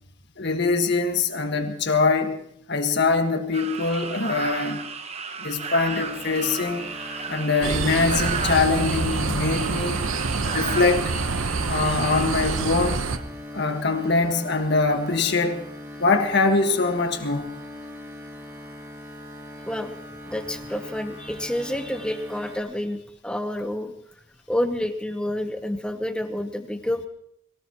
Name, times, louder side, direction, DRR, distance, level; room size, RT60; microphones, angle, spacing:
voice 1, 0.4-2.4 2.7-4.9 5.4-6.9 7.3-10.0 10.4-11.1 11.7-13.0 13.5-15.6 16.0-17.4, left 3 dB, 50° left, 1.6 m, -23 dB
sound 1, 3.5-13.2, right 5 dB, 30° right, 0.9 m, -34 dB
sound 2, 5.9-22.6, left 1 dB, 10° right, 1.8 m, -41 dB
sound 3, 7.6-13.2, right 4 dB, 70° right, 0.8 m, -27 dB
voice 2, 19.7-20.0 20.3-23.9 24.5-27.1, left 1 dB, 5° left, 0.9 m, -29 dB
22.5 x 18.0 x 3.0 m
head